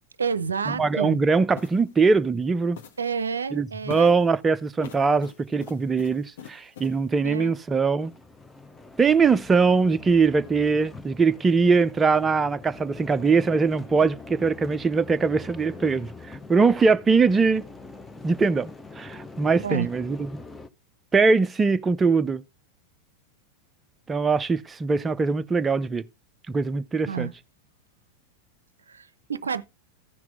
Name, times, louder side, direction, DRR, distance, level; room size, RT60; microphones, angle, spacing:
voice 1, 0.2-1.2 3.0-4.2 7.2-7.6 19.6-19.9 27.1-27.3 28.9-29.6, right 6 dB, 70° right, 0.6 m, -29 dB
sound 1, 0.6-0.8 1.5-1.9 2.7-3.2 3.9-4.3 4.8-7.0, left 8 dB, 55° left, 1.3 m, -44 dB
voice 2, 0.8-2.8 3.5-8.1 9.0-17.6 18.2-20.4 21.1-22.4 24.1-26.0 26.5-27.3, right 4 dB, 15° right, 0.5 m, -22 dB
sound 2, 8.0-20.7, left 3 dB, 10° left, 0.8 m, -44 dB
14.5 x 6.0 x 3.6 m
figure-of-eight pair, 90°, 0 cm